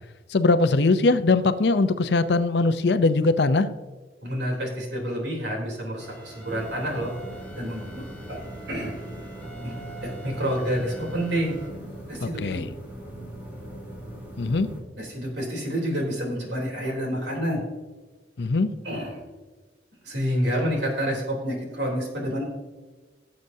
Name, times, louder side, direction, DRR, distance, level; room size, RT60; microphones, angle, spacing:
voice 1, 0.3-3.7 12.2-12.7 14.4-14.7 18.4-18.7, left 3 dB, 70° left, 12 dB, 0.6 m, -21 dB
voice 2, 4.2-7.1 7.6-8.4 8.7-9.0 9.6-9.8 10.0-11.5 12.1-12.6 15.0-17.6 18.8-19.2 20.0-22.4, equal, 75° right, -1 dB, 3.3 m, -28 dB
sound 1, 6.0-12.2, right 2 dB, 10° left, 2.2 m, -46 dB
sound 2, 6.4-14.8, right 1 dB, 10° right, 2.4 m, -40 dB
17.0 x 7.7 x 2.7 m, 1.3 s
head